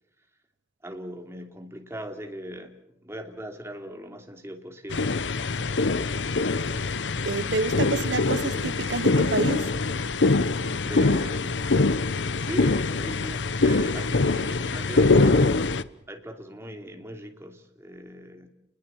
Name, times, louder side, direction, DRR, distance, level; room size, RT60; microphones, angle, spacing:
voice 1, 0.8-5.1 9.1-9.4 10.8-11.5 12.4-15.7 16.1-18.5, equal, 15° right, 2.9 m, -39 dB
sound 1, 4.9-15.8, left 3 dB, 80° left, 0.9 m, -24 dB
voice 2, 7.2-9.6, right 3 dB, 80° right, 1.0 m, -28 dB
29.5 x 21.0 x 7.2 m
head